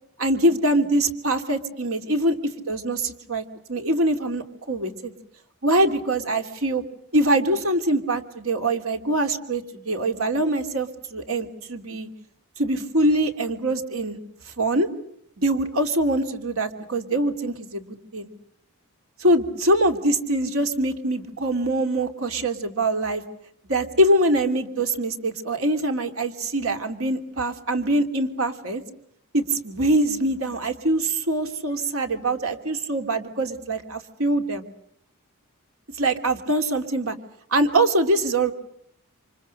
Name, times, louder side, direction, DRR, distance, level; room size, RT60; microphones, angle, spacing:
voice 1, 0.2-2.4 2.7-3.4 3.7-5.1 5.6-6.8 7.1-12.1 12.6-14.2 14.6-14.9 15.4-18.3 19.2-23.2 23.7-28.8 29.3-34.6 36.0-37.1 37.5-38.5, right 1 dB, 70° right, 6 dB, 2.9 m, -23 dB
29.0 x 27.5 x 6.6 m, 0.70 s
head